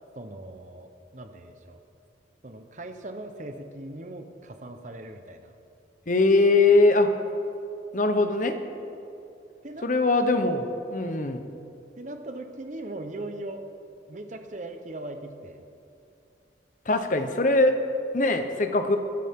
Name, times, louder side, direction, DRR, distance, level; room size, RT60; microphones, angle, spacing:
voice 1, 0.2-1.8 2.4-5.5 9.6-9.9 12.0-13.6 14.1-15.6, right 2 dB, 40° right, 6 dB, 1.0 m, -39 dB
voice 2, 6.1-7.1 7.9-8.6 9.8-11.4 16.9-17.7 18.1-19.0, left 2 dB, 45° left, 7 dB, 0.9 m, -21 dB
23.5 x 10.0 x 3.7 m, 2.7 s
head